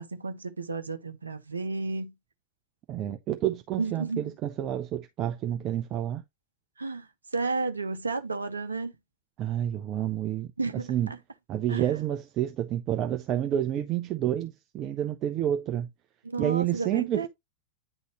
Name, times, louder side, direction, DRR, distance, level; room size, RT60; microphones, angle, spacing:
voice 1, 0.0-2.1 3.8-4.3 6.8-7.1 7.3-8.9 10.6-11.2 11.7-11.9 16.2-17.3, right 3 dB, 75° right, 0.8 m, -32 dB
voice 2, 2.9-6.2 9.4-10.5 10.9-11.1 11.5-15.9 16.4-17.3, right 11 dB, 35° right, 0.7 m, -29 dB
9.7 x 4.0 x 3.0 m
figure-of-eight pair, 90°, 0 cm